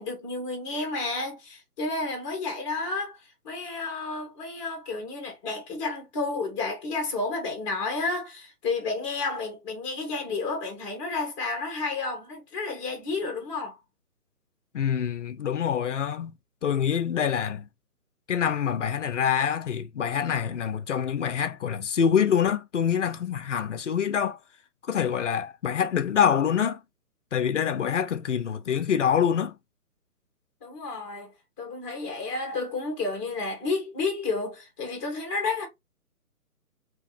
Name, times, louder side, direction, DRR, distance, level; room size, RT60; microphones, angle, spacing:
voice 1, 0.0-13.8 30.6-35.7, left 3 dB, 20° left, 1.8 m, -31 dB
voice 2, 14.7-16.3 16.6-17.7 18.3-24.4 24.8-26.8 27.3-29.6, left 8 dB, 50° left, 0.7 m, -25 dB
4.9 x 3.1 x 3.4 m
hypercardioid pair, 155°, 46 cm